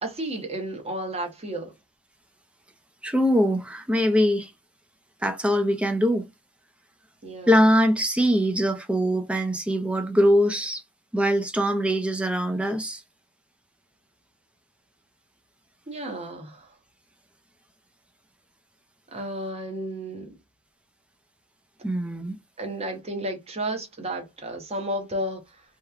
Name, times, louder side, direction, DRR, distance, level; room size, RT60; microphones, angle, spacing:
voice 1, 0.0-1.7 7.2-7.5 15.9-16.7 19.1-20.4 22.6-25.6, right 1 dB, 30° right, 0.8 m, -32 dB
voice 2, 3.0-4.5 5.2-6.3 7.5-10.8 11.1-13.0 21.8-22.4, equal, 5° right, 0.4 m, -22 dB
2.9 x 2.2 x 2.3 m
head